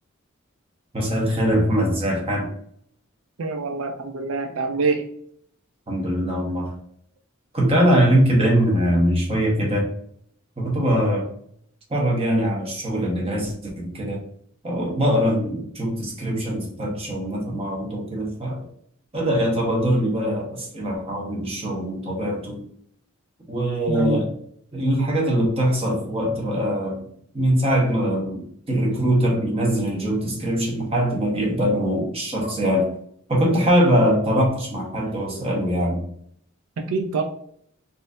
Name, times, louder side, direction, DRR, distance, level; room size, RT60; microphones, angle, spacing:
voice 1, 0.9-2.5 5.9-6.7 7.5-9.9 10.6-11.3 11.9-14.2 14.6-18.7 19.1-22.6 23.5-24.3 24.7-27.0 27.3-32.9 33.3-36.1, equal, 30° right, -2 dB, 1.1 m, -22 dB
voice 2, 3.4-5.1 23.9-24.2 36.8-37.2, right 4 dB, 90° right, 5 dB, 0.4 m, -25 dB
4.1 x 2.6 x 2.5 m, 0.65 s
head